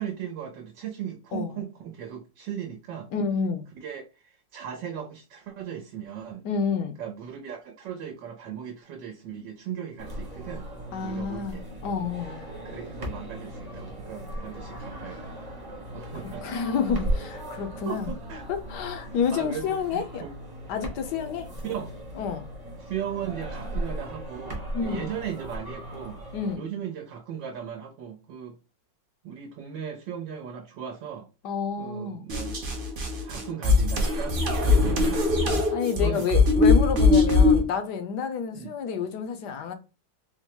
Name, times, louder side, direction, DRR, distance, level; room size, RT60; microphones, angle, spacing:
voice 1, 0.0-3.1 3.7-6.4 7.0-10.7 11.0-11.7 12.6-15.4 15.9-16.6 17.9-18.5 19.1-20.3 21.6-21.9 22.8-26.2 26.6-28.6 29.2-31.3 31.8-32.6 33.2-35.7 36.0-36.3 38.5-38.7, right 8 dB, 80° right, 1.4 m, -37 dB
voice 2, 3.1-3.7 6.4-7.0 10.9-12.5 16.4-18.1 18.5-20.2 20.7-21.5 22.2-22.5 24.7-25.1 26.3-26.6 31.4-32.2 35.7-39.7, left 6 dB, 75° left, 1.1 m, -29 dB
sound 1, 10.0-26.5, right 1 dB, 20° right, 0.7 m, -37 dB
sound 2, 32.3-37.6, left 3 dB, 50° right, 0.6 m, -21 dB
4.3 x 2.1 x 2.9 m
omnidirectional pair, 2.0 m